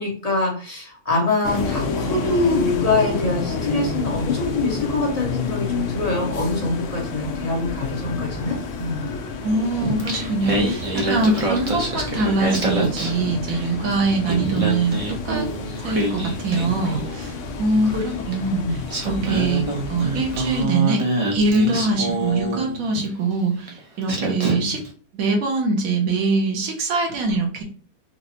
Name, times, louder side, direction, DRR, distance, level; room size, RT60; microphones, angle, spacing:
voice 1, 0.0-9.0 17.8-18.0 18.3-18.7 24.5-24.7, left 2 dB, 30° left, -3 dB, 0.9 m, -24 dB
sound 1, 1.4-20.6, left 4 dB, 65° left, 0.8 m, -29 dB
voice 2, 9.4-15.0 15.2-15.5 15.8-19.6 19.9-21.0 21.3-24.8 25.1-27.6, right 3 dB, 70° right, 1 dB, 1.3 m, -23 dB
Singing, 9.8-13.8 14.1-17.3 18.3-18.4 18.9-23.1 23.7-23.8 24.1-24.9, right 2 dB, 40° right, 0.5 m, -26 dB
4.1 x 2.0 x 2.7 m, 0.41 s
omnidirectional pair, 1.6 m